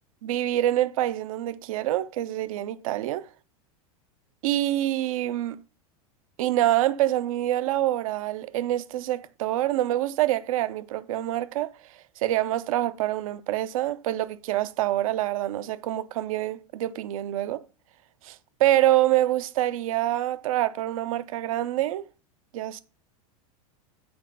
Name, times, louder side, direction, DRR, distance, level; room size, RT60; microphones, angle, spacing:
voice 1, 0.2-3.3 4.4-5.6 6.4-11.7 12.2-17.6 18.2-22.0 22.5-22.8, right 14 dB, 65° right, 0.7 m, -26 dB
7.8 x 4.2 x 5.4 m
hypercardioid pair, 100°, 19 cm